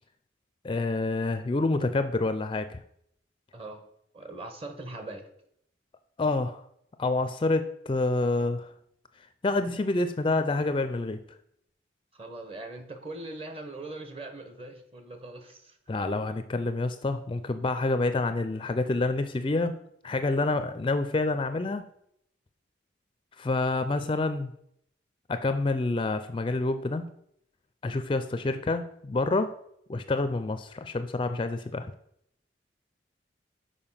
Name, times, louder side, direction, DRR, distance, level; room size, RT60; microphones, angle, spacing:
voice 1, 0.6-2.8 6.2-6.6 7.0-8.7 9.4-11.2 15.9-19.8 20.0-21.8 23.4-24.5 25.3-27.1 27.8-29.5 29.9-31.9, left 2 dB, 25° left, 10 dB, 0.4 m, -27 dB
voice 2, 3.5-3.8 4.1-5.3 12.1-15.8 23.9-24.1 28.4-28.6, right 2 dB, 30° right, 6 dB, 1.0 m, -41 dB
6.9 x 5.1 x 5.6 m, 0.73 s
head